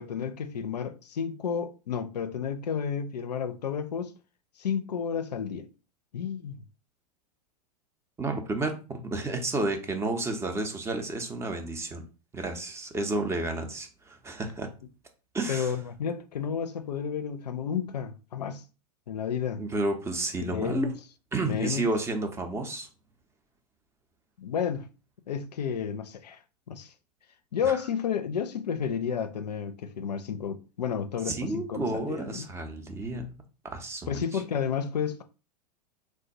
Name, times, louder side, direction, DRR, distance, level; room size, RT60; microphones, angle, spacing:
voice 1, 0.0-4.1 4.6-5.7 6.1-6.6 15.5-18.6 19.1-19.6 20.4-20.9 21.4-21.8 24.4-24.9 25.3-26.4 26.7-26.9 27.5-32.5 34.1-35.2, left 7 dB, 75° left, 0.4 m, -31 dB
voice 2, 8.2-12.0 12.3-14.7 15.3-15.7 19.6-20.9 21.3-22.9 27.6-27.8 31.3-33.3 33.6-34.4, right 2 dB, 15° right, 0.5 m, -31 dB
3.2 x 2.1 x 2.7 m
figure-of-eight pair, 95°, 21 cm